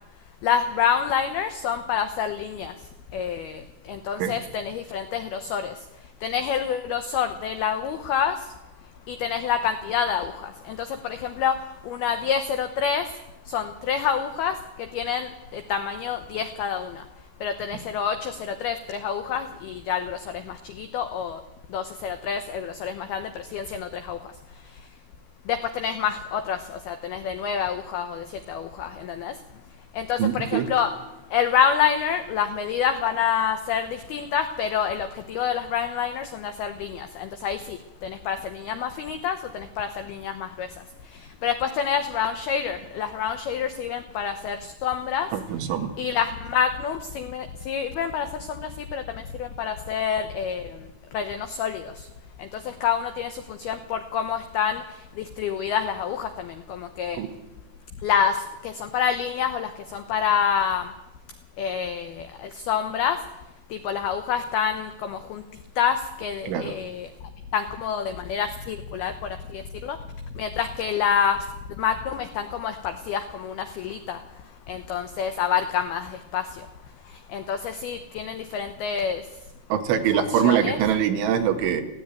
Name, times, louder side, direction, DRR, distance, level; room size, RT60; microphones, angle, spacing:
voice 1, 0.4-2.7 3.1-3.6 3.9-5.7 6.2-8.4 9.1-11.6 11.9-13.1 13.5-14.6 14.9-17.0 17.4-21.4 21.7-24.2 25.5-29.3 29.9-31.0 31.3-40.7 41.4-45.3 46.0-50.6 51.1-51.9 52.4-54.8 55.2-57.2 58.0-60.9 61.6-63.2 63.7-65.4 65.8-67.1 67.5-69.1 69.5-70.0 70.4-71.4 71.8-74.2 74.7-76.5 77.3-79.2 80.1-80.8, left 8 dB, 90° left, 9 dB, 2.2 m, -27 dB
voice 2, 30.2-30.7 45.3-45.9 57.2-57.3 66.5-66.7 79.7-81.8, right 9 dB, 70° right, 6 dB, 3.8 m, -23 dB
18.5 x 16.0 x 9.1 m, 1.0 s
omnidirectional pair, 5.9 m